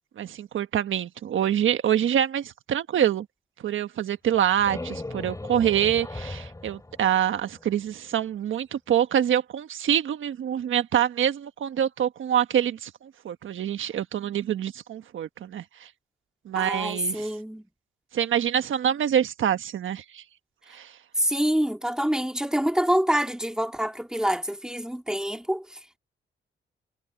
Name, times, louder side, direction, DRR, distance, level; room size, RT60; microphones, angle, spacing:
voice 1, 0.2-3.3 3.6-15.9 16.4-17.3 18.1-20.2 20.7-20.9, right 10 dB, 75° right, 1.4 m, -26 dB
sound 1, 4.3-7.9, left 2 dB, 15° left, 4.2 m, -38 dB
voice 2, 16.6-17.6 21.2-26.0, equal, 5° right, 2.4 m, -26 dB
cardioid pair, 70°, 20 cm